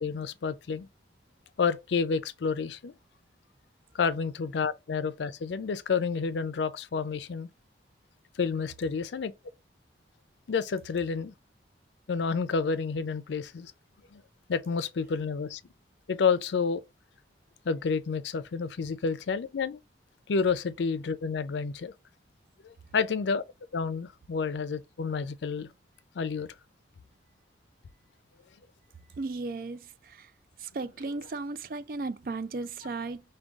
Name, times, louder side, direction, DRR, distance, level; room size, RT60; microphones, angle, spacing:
voice 1, 0.0-0.9 1.6-2.9 3.9-7.5 8.4-9.3 10.5-11.3 12.1-13.7 14.1-14.2 14.5-15.6 16.1-16.8 17.6-19.8 20.3-21.9 22.6-23.4 23.7-25.7 26.1-26.5, left 5 dB, 80° left, 0.4 m, -29 dB
voice 2, 29.2-30.3 30.6-33.2, right 3 dB, 50° right, 0.4 m, -35 dB
5.1 x 2.3 x 3.5 m
head